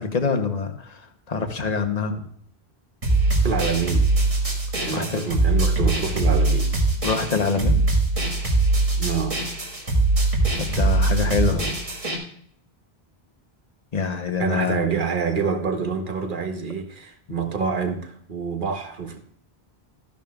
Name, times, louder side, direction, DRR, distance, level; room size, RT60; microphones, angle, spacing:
voice 1, 0.0-2.3 4.9-5.2 7.0-7.8 10.6-11.7 13.9-14.8, left 5 dB, 40° left, 1.0 m, -25 dB
sound 1, 3.0-12.2, right 2 dB, 35° right, 1.7 m, -22 dB
voice 2, 3.4-4.1 4.8-6.7 9.0-9.4 14.4-19.2, right 5 dB, 55° right, 1.2 m, -26 dB
13.0 x 10.5 x 2.3 m
omnidirectional pair, 1.1 m